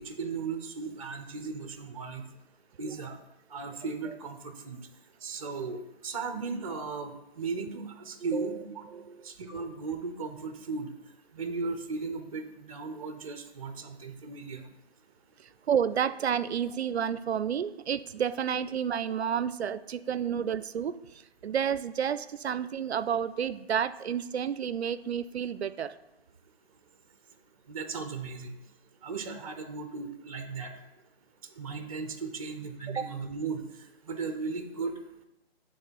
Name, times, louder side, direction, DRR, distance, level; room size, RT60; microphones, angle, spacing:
voice 1, 0.0-2.2 2.8-3.2 3.5-4.8 5.2-8.6 9.3-10.9 11.4-14.6 27.7-28.5 29.0-30.7 31.6-33.6 34.1-34.9, right 4 dB, 35° right, 8 dB, 0.6 m, -36 dB
voice 2, 8.2-8.6 8.9-9.2 15.7-21.0 21.4-25.9 32.9-33.1, right 8 dB, 80° right, 15 dB, 0.5 m, -30 dB
7.7 x 3.7 x 4.5 m, 0.95 s
figure-of-eight pair, 155°, 32 cm